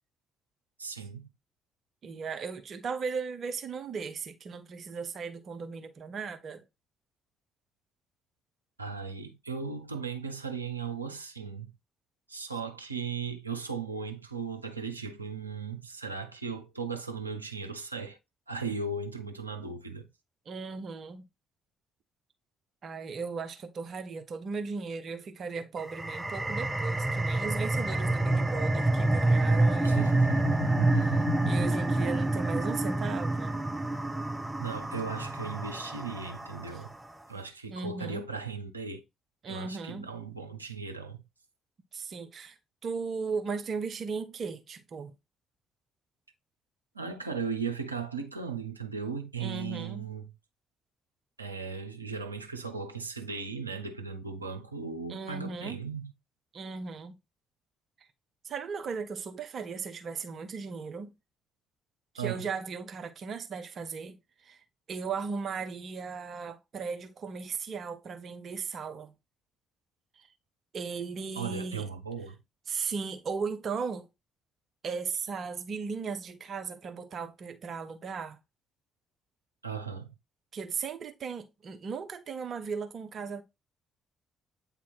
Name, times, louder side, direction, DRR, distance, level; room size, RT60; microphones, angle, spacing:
voice 1, 0.8-1.3 8.8-11.7 12.3-18.2 18.5-20.1 29.8-31.7 34.6-36.9 37.3-39.0 39.5-41.2 46.9-50.3 51.4-56.1 62.2-62.5 71.3-72.4 79.6-80.1, right 5 dB, 85° right, 0.5 m, -37 dB
voice 2, 2.0-6.6 12.5-12.6 20.5-21.2 22.8-30.1 31.0-33.5 36.7-36.8 37.7-38.3 39.4-40.1 41.9-45.1 49.4-50.1 55.1-55.8 56.5-57.1 58.4-61.1 62.1-64.2 64.4-64.6 64.9-69.1 70.2-70.3 70.7-71.9 72.7-74.1 74.8-78.4 80.5-83.4, right 5 dB, 45° right, 0.7 m, -37 dB
sound 1, 25.8-37.0, right 2 dB, 10° right, 0.7 m, -28 dB
8.4 x 2.8 x 4.1 m
figure-of-eight pair, 45°, 0 cm